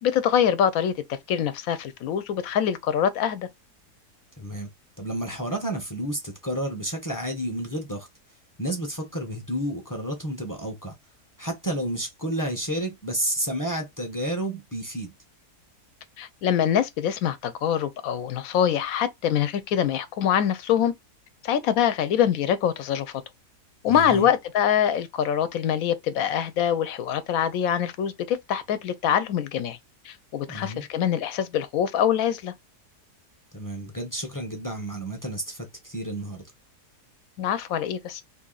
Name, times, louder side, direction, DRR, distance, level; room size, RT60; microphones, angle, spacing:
voice 1, 0.0-3.5 16.2-20.9 21.4-23.1 23.8-29.8 30.0-32.5 37.4-38.2, left 9 dB, 70° left, 0.9 m, -24 dB
voice 2, 4.4-4.7 5.0-8.1 8.6-10.9 11.4-15.1 23.9-24.3 30.5-30.9 33.5-36.4, right 1 dB, 25° left, 0.4 m, -31 dB
2.8 x 2.7 x 3.8 m
omnidirectional pair, 1.7 m